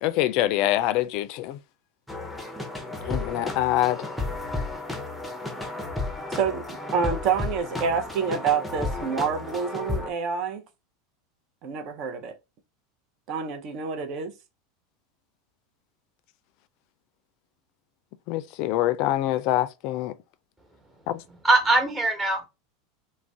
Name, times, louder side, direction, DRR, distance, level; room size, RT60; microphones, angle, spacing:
voice 1, 0.0-1.6 3.0-4.1 18.3-20.1 21.1-21.2, left 14 dB, 60° left, 0.3 m, -25 dB
sound 1, 2.1-10.1, left 2 dB, ahead, 0.6 m, -33 dB
voice 2, 6.3-10.6 11.6-12.3 13.3-14.3, right 6 dB, 50° right, 0.7 m, -27 dB
voice 3, 21.3-22.5, right 2 dB, 20° right, 1.1 m, -22 dB
2.4 x 2.2 x 3.4 m
hypercardioid pair, 95°, 0 cm